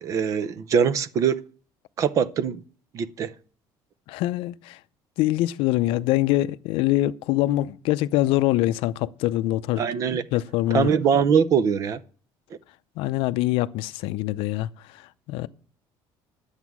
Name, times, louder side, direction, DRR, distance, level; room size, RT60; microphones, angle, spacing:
voice 1, 0.0-1.4 2.0-2.6 2.9-3.3 9.8-10.2 10.7-12.0, right 7 dB, 35° right, 0.5 m, -22 dB
voice 2, 4.1-4.8 5.2-9.8 10.3-10.9 13.0-14.7 15.3-15.5, left 16 dB, 65° left, 0.5 m, -24 dB
11.5 x 8.1 x 6.1 m
cardioid pair, 180°, 10 cm